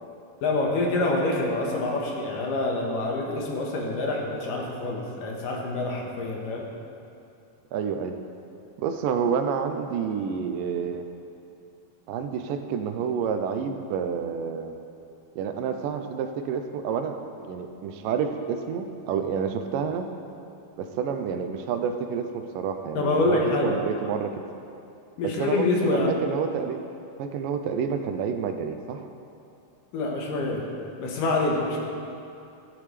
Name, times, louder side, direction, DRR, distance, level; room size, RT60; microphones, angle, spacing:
voice 1, 0.4-6.7 22.9-23.7 25.2-26.2 29.9-30.6 31.0-31.8, left 2 dB, 80° left, -1 dB, 3.0 m, -26 dB
voice 2, 7.7-8.2 8.8-11.1 12.1-14.7 15.4-20.1 20.8-24.3 25.2-26.8 27.2-29.1, right 7 dB, 85° right, 7 dB, 2.3 m, -29 dB
15.0 x 11.0 x 3.3 m, 2.6 s
omnidirectional pair, 3.8 m